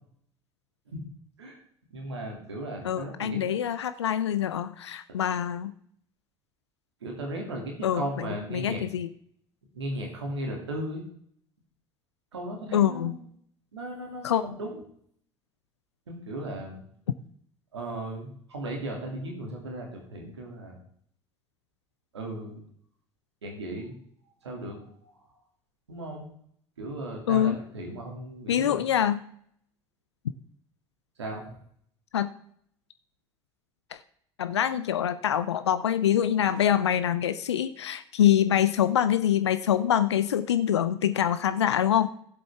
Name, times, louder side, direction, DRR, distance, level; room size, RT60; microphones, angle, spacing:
voice 1, 1.9-3.4 7.0-8.8 9.7-11.0 12.3-13.2 13.7-14.8 16.1-16.8 17.7-20.8 22.1-22.6 23.4-23.9 24.4-25.2 25.9-26.3 26.8-28.8 31.2-31.5, right 1 dB, 85° right, 1 dB, 2.5 m, -36 dB
voice 2, 2.8-5.7 7.8-9.1 12.7-13.2 14.2-14.4 27.3-27.6 28.5-29.2 32.1-32.3 33.9-34.0 34.4-42.1, left 10 dB, 80° left, 12 dB, 0.5 m, -25 dB
16.5 x 7.6 x 3.5 m, 0.65 s
figure-of-eight pair, 60°, 14 cm